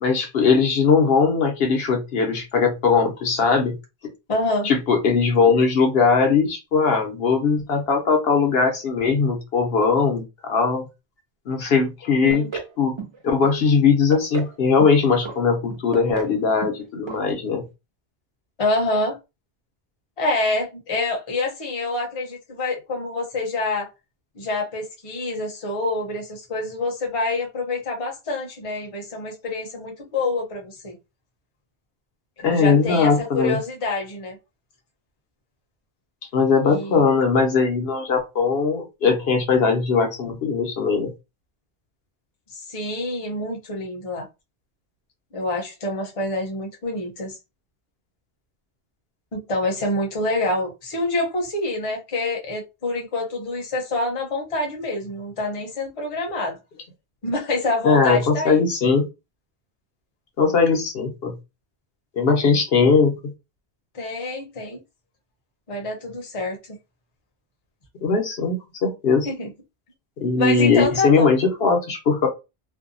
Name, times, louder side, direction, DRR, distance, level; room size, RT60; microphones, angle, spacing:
voice 1, 0.0-3.8 4.6-10.8 11.5-12.5 12.8-13.0 13.2-17.6 32.4-33.6 36.3-41.1 57.8-59.1 60.4-61.3 62.2-63.1 68.0-69.3 70.2-72.3, left 5 dB, 70° left, 0.9 m, -20 dB
voice 2, 4.3-4.7 12.2-12.5 18.6-19.2 20.2-23.9 24.3-31.0 32.4-34.4 36.6-37.0 42.5-44.3 45.3-47.4 49.3-56.6 57.2-58.6 63.9-64.8 65.7-66.6 69.2-69.5 70.4-71.3, left 2 dB, 35° left, 0.7 m, -26 dB
sound 1, 12.3-12.7 13.0-13.5 13.9-14.5 14.8-15.4 15.7-16.4 16.6-16.8 17.1-17.2 17.5-17.6, right 5 dB, 50° right, 0.3 m, -33 dB
2.6 x 2.2 x 2.5 m
omnidirectional pair, 1.1 m